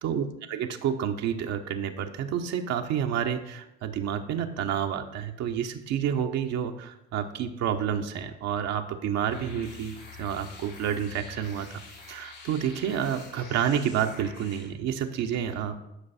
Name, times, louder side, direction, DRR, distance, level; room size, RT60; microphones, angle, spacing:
voice 1, 0.0-11.8 12.1-15.8, right 8 dB, 60° right, 5 dB, 0.9 m, -29 dB
sound 1, 9.3-14.7, left 5 dB, 80° left, 2.9 m, -46 dB
11.5 x 5.3 x 4.2 m, 0.86 s
hypercardioid pair, 65°, 30 cm